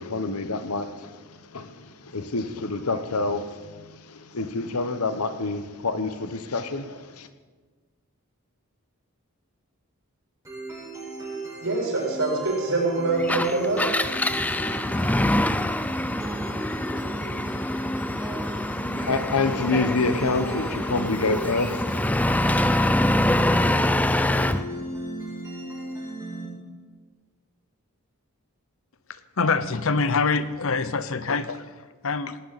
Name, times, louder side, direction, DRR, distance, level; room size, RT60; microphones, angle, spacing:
voice 1, 0.0-7.3 19.0-22.3, left 3 dB, 90° left, 10 dB, 1.1 m, -28 dB
sound 1, 10.5-26.5, right 1 dB, 15° right, 5.4 m, -35 dB
voice 2, 11.6-13.8, right 2 dB, 70° right, -2 dB, 6.8 m, -24 dB
Engine, 13.2-24.7, left 1 dB, 5° left, 0.4 m, -25 dB
voice 3, 29.1-32.4, left 4 dB, 65° left, 13 dB, 0.8 m, -25 dB
19.0 x 18.0 x 4.2 m, 1.4 s
head